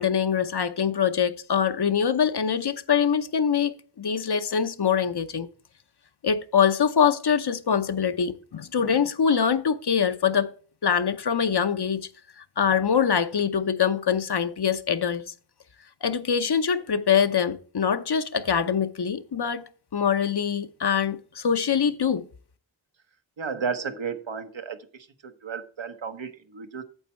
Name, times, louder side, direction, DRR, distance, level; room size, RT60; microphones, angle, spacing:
voice 1, 0.0-5.5 6.2-10.5 10.8-12.1 12.6-15.3 16.0-22.3, left 7 dB, 55° left, 0.8 m, -24 dB
voice 2, 23.4-24.8 25.4-26.8, right 6 dB, 70° right, 1.1 m, -32 dB
8.9 x 7.2 x 4.4 m
wide cardioid pair, 85°, 47 cm